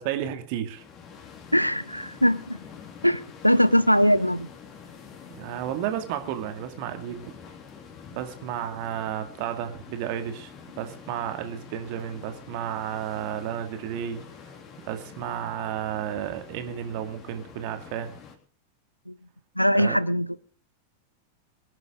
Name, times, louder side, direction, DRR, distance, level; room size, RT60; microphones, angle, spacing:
voice 1, 0.1-0.8 5.3-7.2 8.1-10.5 10.8-14.2 14.8-18.1 19.7-20.0, right 10 dB, 45° right, 7 dB, 2.3 m, -32 dB
sound 1, 0.7-18.4, left 6 dB, 30° left, 3.3 m, -46 dB
voice 2, 1.5-2.6 3.0-4.5 19.1-19.2 19.6-20.3, equal, 90° left, 20 dB, 0.6 m, -21 dB
23.5 x 11.0 x 3.8 m, 0.39 s
figure-of-eight pair, 90°, 0 cm